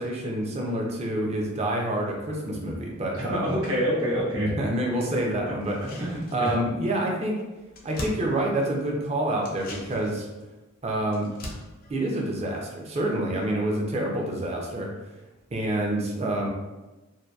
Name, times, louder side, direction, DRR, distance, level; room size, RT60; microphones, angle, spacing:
voice 1, 0.0-3.5 4.3-6.0 6.3-7.4 7.8-10.3 10.8-11.3 11.9-14.9 15.5-16.5, right 1 dB, 30° right, -1 dB, 0.4 m, -27 dB
voice 2, 3.1-4.5 5.5-5.6 6.0-6.5, equal, 70° right, -6 dB, 0.9 m, -27 dB
sound 1, 5.6-6.8 7.1-7.2 7.4-9.0 9.4-13.1 13.4-13.5, left 1 dB, 40° left, 0.4 m, -42 dB
2.7 x 2.2 x 2.2 m, 1.1 s
head